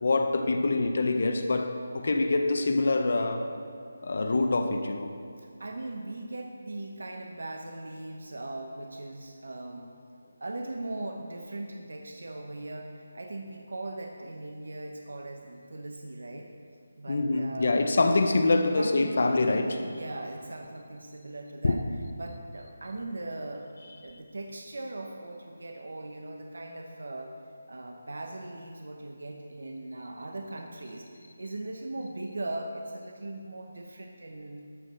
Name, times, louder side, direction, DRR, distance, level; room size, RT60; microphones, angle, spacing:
voice 1, 0.0-3.5 4.0-5.1 17.1-19.8 21.6-21.8, left 2 dB, 40° left, 7 dB, 0.6 m, -25 dB
voice 2, 5.4-9.9 10.4-16.5 17.0-17.9 18.8-21.8 22.2-23.7 24.0-27.3 27.7-34.6, right 2 dB, 70° right, 3 dB, 1.0 m, -39 dB
12.5 x 6.3 x 6.5 m, 2.4 s
figure-of-eight pair, 180°, 0 cm